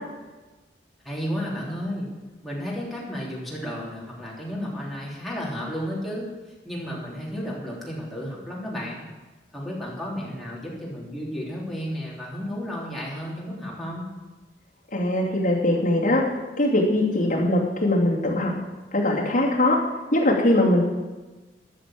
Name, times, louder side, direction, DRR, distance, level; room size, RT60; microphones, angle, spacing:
voice 1, 1.0-2.1 2.4-6.3 6.6-9.1 9.5-14.1, equal, ahead, -6 dB, 3.3 m, -32 dB
voice 2, 14.9-16.2 16.6-18.5 18.9-19.8 20.1-20.8, left 1 dB, 50° left, -3 dB, 2.7 m, -21 dB
13.0 x 6.6 x 7.6 m, 1.2 s
head